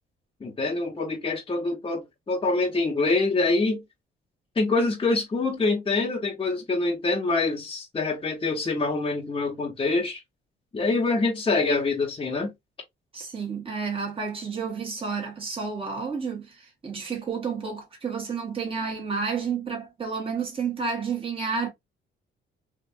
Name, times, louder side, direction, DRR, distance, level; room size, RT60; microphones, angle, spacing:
voice 1, 0.4-3.8 4.5-10.2 10.7-12.5, left 3 dB, 25° left, 1.0 m, -25 dB
voice 2, 13.1-21.7, right 5 dB, 30° right, 1.6 m, -30 dB
3.4 x 2.6 x 2.5 m
cardioid pair, 90°, 20 cm